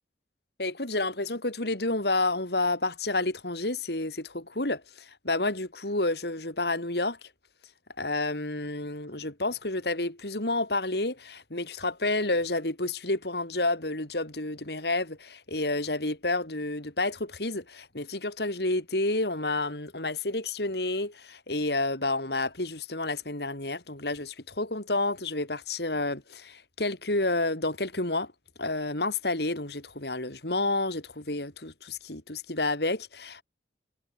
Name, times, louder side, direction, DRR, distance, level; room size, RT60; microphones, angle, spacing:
voice 1, 0.6-7.2 8.0-28.3 28.6-33.4, left 2 dB, 70° left, 4.2 m, -30 dB
head